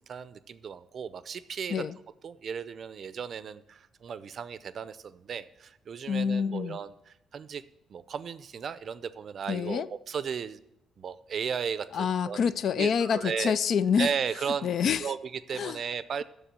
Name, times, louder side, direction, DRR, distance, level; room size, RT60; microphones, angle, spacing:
voice 1, 0.0-1.8 2.2-7.6 7.9-10.6 11.0-12.5 12.8-13.6 14.0-14.7 15.0-16.2, right 7 dB, 55° right, 0.5 m, -35 dB
voice 2, 6.1-6.8 9.5-9.9 11.9-14.1 14.6-15.1 15.5-15.8, left 7 dB, 65° left, 0.3 m, -27 dB
7.1 x 6.6 x 7.5 m
cardioid pair, 90°, 0 cm